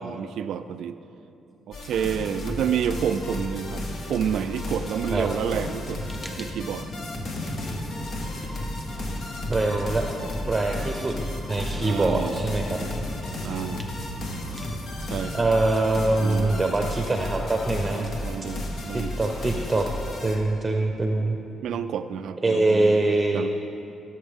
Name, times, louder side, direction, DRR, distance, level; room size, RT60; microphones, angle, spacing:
voice 1, 0.0-1.0 1.7-6.0 6.4-6.9 11.8-12.5 13.4-14.0 15.1-15.5 16.2-16.8 17.9-19.1 21.6-23.0 23.3-23.5, right 8 dB, 75° right, 10 dB, 0.3 m, -29 dB
sound 1, 1.7-20.4, left 1 dB, 60° left, 1.3 m, -33 dB
Fire, 5.5-15.4, left 1 dB, 20° left, 0.9 m, -39 dB
voice 2, 9.5-10.0 10.5-11.1 11.5-12.8 15.3-18.1 18.9-19.9 20.2-21.4 22.4-23.4, right 2 dB, 20° right, 2 dB, 0.7 m, -23 dB
14.5 x 7.1 x 3.6 m, 2.7 s
cardioid pair, 90°, 0 cm